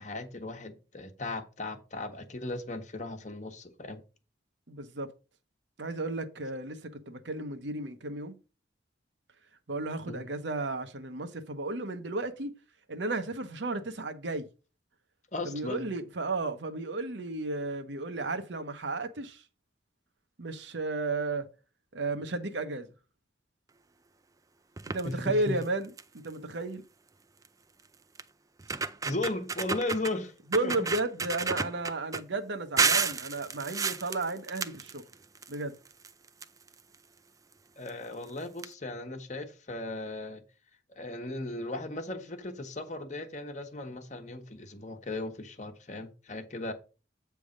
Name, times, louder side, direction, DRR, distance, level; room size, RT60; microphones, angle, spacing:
voice 1, 0.0-4.0 10.1-10.3 15.3-15.9 25.0-25.6 29.0-30.3 30.6-30.9 37.8-40.4 40.9-46.7, left 2 dB, 40° left, 1.1 m, -36 dB
voice 2, 4.7-5.1 5.8-8.4 9.7-12.5 12.9-14.5 15.4-19.4 20.4-21.5 21.9-22.9 24.9-26.8 30.5-35.0 35.5-35.8, right 2 dB, 75° right, 1.0 m, -33 dB
sound 1, 24.8-25.1 25.6-25.7 26.0-26.3 27.4-27.5 28.2-28.3 28.6-30.1 30.5-32.2 32.8-35.5 35.8-37.0 37.9-38.0 38.2-38.3 38.6-38.7, right 5 dB, 20° right, 0.4 m, -31 dB
8.4 x 3.5 x 6.4 m
head